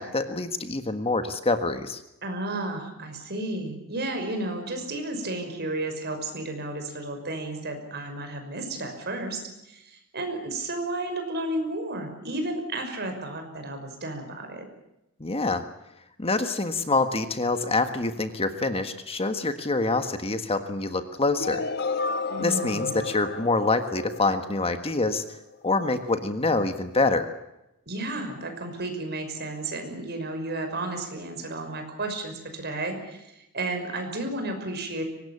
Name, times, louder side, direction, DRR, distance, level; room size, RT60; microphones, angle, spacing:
voice 1, 0.0-2.0 15.2-15.6 16.2-21.6 22.4-25.2 25.6-27.3, left 3 dB, 25° left, 8 dB, 1.6 m, -26 dB
voice 2, 2.2-14.6 22.3-23.0 27.9-35.0, right 2 dB, 50° right, 5 dB, 6.0 m, -32 dB
sound 1, 21.4-25.3, left 4 dB, 50° left, 1.5 m, -32 dB
24.0 x 20.0 x 8.6 m, 0.89 s
head